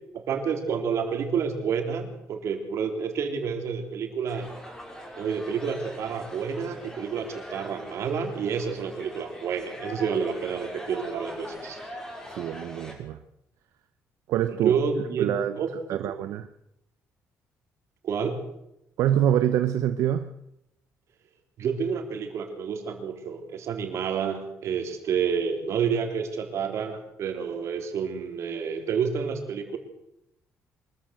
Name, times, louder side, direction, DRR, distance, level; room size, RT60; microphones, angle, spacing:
voice 1, 0.1-4.5 5.2-11.8 14.6-15.3 15.6-15.7 18.0-18.5 21.6-29.8, right 6 dB, 60° right, 3.8 m, -29 dB
sound 1, 4.3-12.9, equal, 10° left, 6.0 m, -42 dB
voice 2, 12.2-13.2 14.3-14.8 15.2-15.6 15.9-16.5 19.0-20.3, right 11 dB, 85° right, 0.9 m, -25 dB
24.5 x 14.0 x 7.9 m
cardioid pair, 130°, 5 cm